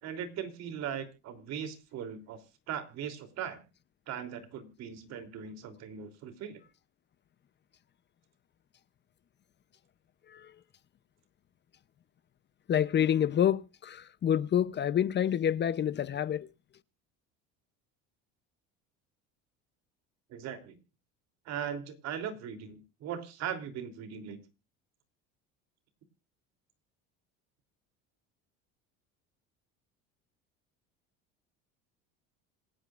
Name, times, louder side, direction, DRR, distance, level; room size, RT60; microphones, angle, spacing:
voice 1, 0.0-2.4 2.7-3.6 4.1-6.6 20.3-20.8 21.4-24.4, right 8 dB, 60° right, 3.3 m, -39 dB
voice 2, 12.7-16.5, left 9 dB, 35° left, 0.8 m, -28 dB
27.0 x 8.9 x 2.5 m
supercardioid pair, 115°, 30 cm